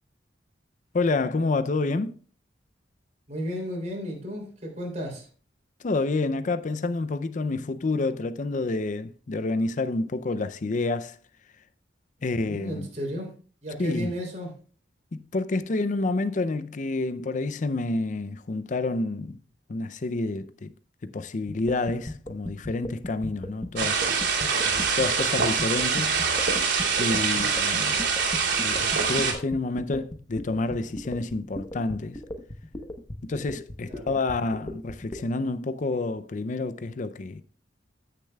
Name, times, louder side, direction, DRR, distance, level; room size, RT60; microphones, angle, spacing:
voice 1, 0.9-2.2 5.8-11.2 12.2-12.9 13.8-14.2 15.1-19.4 19.7-20.7 21.0-24.1 25.0-26.2 27.0-28.0 28.6-32.2 33.2-37.4, left 3 dB, 45° left, 0.5 m, -28 dB
voice 2, 3.3-5.3 12.4-13.3 13.6-14.5 24.5-24.8 33.9-34.1, equal, 40° right, 3.3 m, -34 dB
sound 1, 21.5-35.2, left 1 dB, 20° left, 0.8 m, -36 dB
sound 2, 23.8-29.3, right 5 dB, 80° right, 2.7 m, -24 dB
15.0 x 6.7 x 2.3 m
head